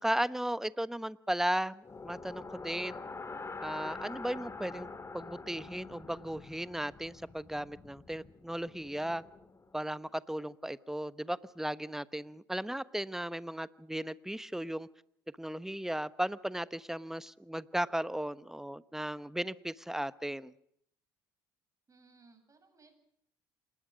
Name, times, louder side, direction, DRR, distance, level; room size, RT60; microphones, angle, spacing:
voice 1, 0.0-3.0 3.6-9.2 9.7-14.9 15.4-20.5, right 1 dB, 5° right, 16 dB, 1.1 m, -36 dB
sound 1, 1.8-9.9, left 4 dB, 25° left, 2.6 m, -46 dB
voice 2, 21.9-22.9, right 3 dB, 30° right, 7 dB, 7.9 m, -62 dB
27.5 x 20.0 x 6.3 m, 0.69 s
hypercardioid pair, 60°, 11 cm